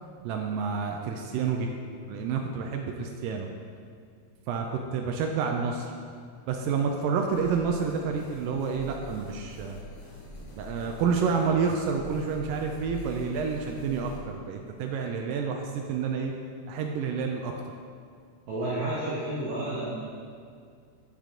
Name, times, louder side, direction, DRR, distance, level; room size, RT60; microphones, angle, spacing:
voice 1, 0.2-1.7 2.1-3.5 4.5-5.9 6.5-9.8 10.6-16.3 16.7-17.5, right 5 dB, 85° right, 2 dB, 1.9 m, -29 dB
sound 1, 7.3-14.2, left 1 dB, 80° left, 4.0 m, -44 dB
voice 2, 18.5-20.0, right 1 dB, 65° right, -8 dB, 2.9 m, -31 dB
10.0 x 8.3 x 3.8 m, 2.2 s
omnidirectional pair, 4.7 m